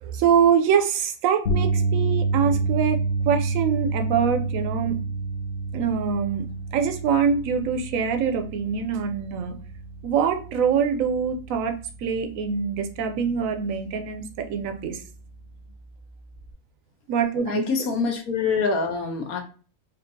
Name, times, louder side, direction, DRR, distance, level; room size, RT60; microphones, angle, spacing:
voice 1, 0.0-3.0 3.3-5.0 5.7-6.5 6.7-9.5 10.0-11.7 12.0-15.0 17.1-17.6, right 7 dB, 70° right, 6 dB, 0.9 m, -24 dB
sound 1, 1.5-13.7 14.0-14.3 16.5-16.6, right 3 dB, 45° left, 0.9 m, -29 dB
voice 2, 17.5-19.4, left 5 dB, 80° left, 4 dB, 1.2 m, -25 dB
4.4 x 2.7 x 2.6 m, 0.38 s
omnidirectional pair, 1.5 m